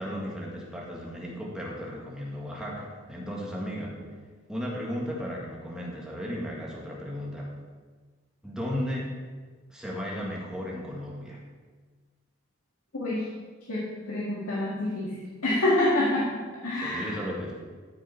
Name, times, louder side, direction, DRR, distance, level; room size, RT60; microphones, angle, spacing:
voice 1, 0.0-3.9 4.5-7.5 8.4-9.1 9.7-11.4 16.8-17.5, equal, 5° right, -4 dB, 1.8 m, -35 dB
voice 2, 12.9-13.3 13.7-15.2 15.4-17.2, left 1 dB, 90° left, -6 dB, 2.0 m, -27 dB
13.5 x 6.3 x 4.4 m, 1.4 s
head